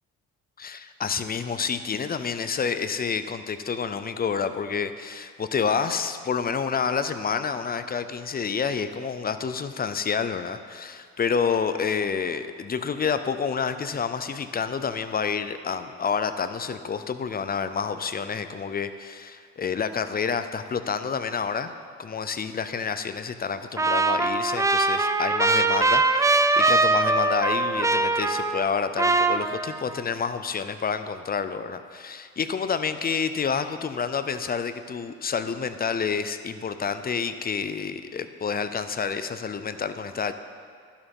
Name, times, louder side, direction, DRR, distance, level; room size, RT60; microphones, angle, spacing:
voice 1, 0.6-21.7 22.0-40.3, left 6 dB, 30° left, 11 dB, 0.6 m, -29 dB
Trumpet, 23.8-28.7 29.0-30.0, right 3 dB, 10° right, 0.4 m, -22 dB
11.5 x 7.2 x 5.3 m, 2.1 s
cardioid pair, 90°, 30 cm